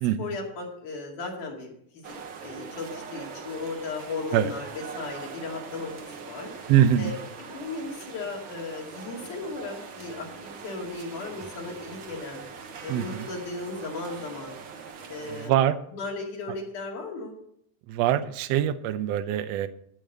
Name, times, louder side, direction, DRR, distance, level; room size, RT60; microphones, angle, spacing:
voice 1, 0.2-2.1 2.4-6.5 7.0-7.1 7.5-12.4 12.8-14.6 15.1-15.5 15.9-17.3, left 3 dB, 75° left, 0 dB, 3.9 m, -36 dB
sound 1, 2.0-15.5, right 5 dB, 55° right, 1.3 m, -42 dB
voice 2, 6.7-7.1 12.9-13.3 15.3-15.8 17.9-19.7, right 11 dB, 75° right, 12 dB, 1.6 m, -23 dB
14.0 x 5.2 x 7.8 m, 0.72 s
omnidirectional pair, 3.5 m